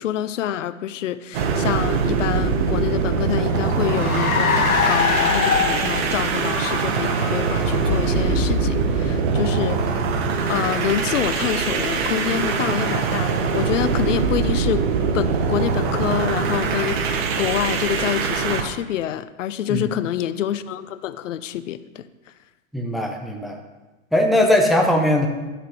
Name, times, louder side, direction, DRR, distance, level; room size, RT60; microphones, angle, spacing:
voice 1, 0.0-10.0 10.5-14.8 15.1-22.1, left 11 dB, 60° left, 13 dB, 0.7 m, -27 dB
sound 1, 1.3-18.7, right 5 dB, 45° right, 1.1 m, -23 dB
Car, 2.8-10.6, left 6 dB, 85° left, 1.4 m, -25 dB
voice 2, 22.7-23.6 24.1-25.3, left 1 dB, ahead, 1 dB, 0.5 m, -19 dB
12.5 x 8.1 x 3.1 m, 1.2 s
hypercardioid pair, 135°, 41 cm